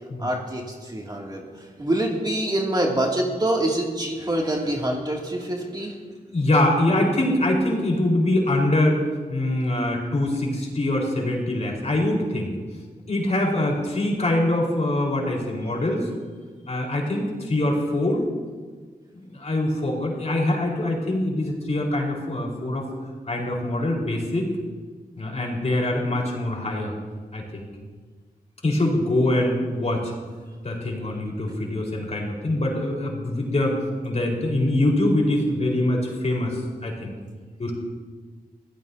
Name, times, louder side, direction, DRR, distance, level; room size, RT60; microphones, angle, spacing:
voice 1, 0.2-6.0, right 1 dB, 25° right, -2 dB, 2.6 m, -26 dB
voice 2, 6.3-9.0 9.3-12.6 13.1-16.1 16.7-18.2 19.1-22.8 23.2-24.5 25.2-26.9 27.3-27.7 28.6-30.1 30.6-33.7 34.0-37.1 37.6-37.7, left 1 dB, 45° left, -1 dB, 4.6 m, -24 dB
25.0 x 17.0 x 2.8 m, 1.5 s
wide cardioid pair, 85°, 16 cm